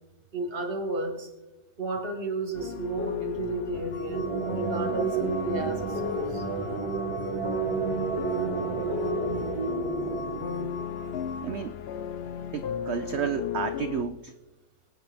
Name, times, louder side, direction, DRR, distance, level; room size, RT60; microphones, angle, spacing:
voice 1, 0.3-1.3 1.8-6.4, right 2 dB, 35° right, 5 dB, 1.9 m, -33 dB
sound 1, 2.5-14.0, left 8 dB, 75° left, 0.5 m, -35 dB
sound 2, 3.9-11.5, left 4 dB, 45° left, 1.1 m, -44 dB
sound 3, 3.9-11.3, right 6 dB, 65° right, 1.6 m, -31 dB
voice 2, 11.4-11.7 12.5-14.3, right 8 dB, 85° right, 11 dB, 0.6 m, -31 dB
24.5 x 9.2 x 3.5 m, 1.1 s
omnidirectional pair, 1.8 m